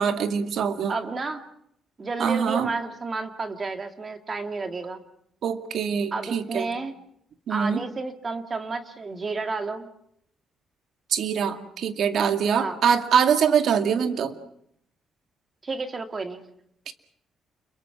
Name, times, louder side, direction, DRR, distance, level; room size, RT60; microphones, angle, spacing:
voice 1, 0.0-1.0 2.2-2.7 5.4-6.7 7.5-7.8 11.1-14.3 16.9-17.0, right 7 dB, 65° right, 8 dB, 2.2 m, -23 dB
voice 2, 0.9-1.4 2.0-5.0 6.1-6.9 7.5-9.9 12.6-12.8 15.6-16.4, right 3 dB, 35° right, 7 dB, 2.4 m, -31 dB
29.5 x 22.5 x 6.1 m, 0.73 s
cardioid pair, 90°, 0 cm